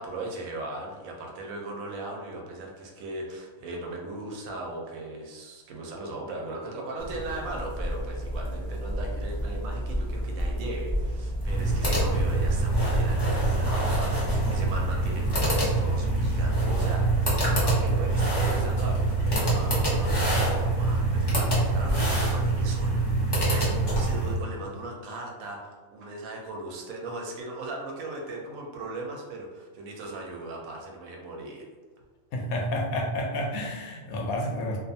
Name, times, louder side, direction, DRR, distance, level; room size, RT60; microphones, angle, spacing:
voice 1, 0.0-31.7, right 2 dB, 75° right, 0 dB, 1.0 m, -38 dB
sound 1, 7.0-22.6, equal, 45° right, 0.3 m, -33 dB
sound 2, 11.4-24.4, right 2 dB, 25° left, 0.5 m, -25 dB
voice 2, 32.3-34.8, left 1 dB, 75° left, 0 dB, 1.0 m, -30 dB
2.5 x 2.4 x 2.6 m, 1.4 s
omnidirectional pair, 1.5 m